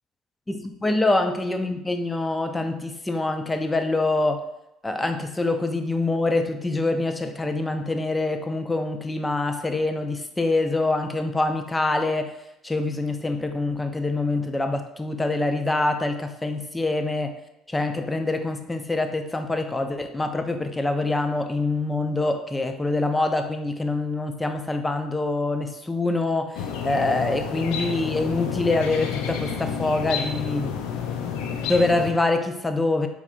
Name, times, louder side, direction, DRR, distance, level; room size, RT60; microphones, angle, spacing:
voice 1, 0.5-4.4 4.8-12.3 12.6-17.4 17.7-30.8 31.6-33.1, left 2 dB, 15° left, 7 dB, 0.5 m, -25 dB
sound 1, 26.5-32.1, left 7 dB, 75° left, 0.5 m, -30 dB
4.9 x 3.3 x 2.5 m, 0.84 s
hypercardioid pair, 75°, 0 cm